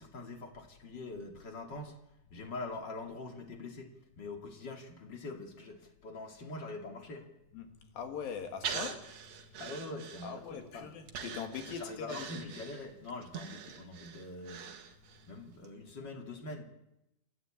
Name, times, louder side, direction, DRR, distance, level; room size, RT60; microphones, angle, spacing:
voice 1, 0.0-2.0 2.3-7.3 9.6-10.9 11.7-14.7 15.3-16.6, left 2 dB, 35° left, 4 dB, 2.5 m, -44 dB
voice 2, 7.9-9.0 10.2-12.5, left 6 dB, 75° left, 7 dB, 3.7 m, -41 dB
Breathing, 8.6-10.6 11.1-15.3 15.6-15.7, right 7 dB, 55° right, 2.5 m, -43 dB
28.0 x 11.0 x 8.7 m, 0.87 s
omnidirectional pair, 4.2 m